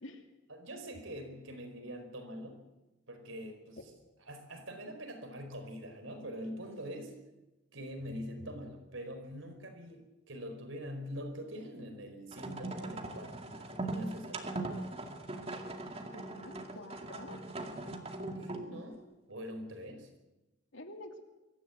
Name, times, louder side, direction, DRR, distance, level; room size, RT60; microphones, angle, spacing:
voice 1, 0.5-2.6 3.1-3.8 4.2-7.1 7.7-14.9 18.4-19.0 19.3-20.1, equal, 90° right, 6 dB, 4.6 m, -44 dB
sound 1, 12.3-18.8, right 2 dB, 30° right, 2.1 m, -40 dB
voice 2, 16.1-17.4 20.7-21.2, left 1 dB, 80° left, 4 dB, 2.8 m, -48 dB
23.5 x 14.5 x 8.4 m, 1.0 s
head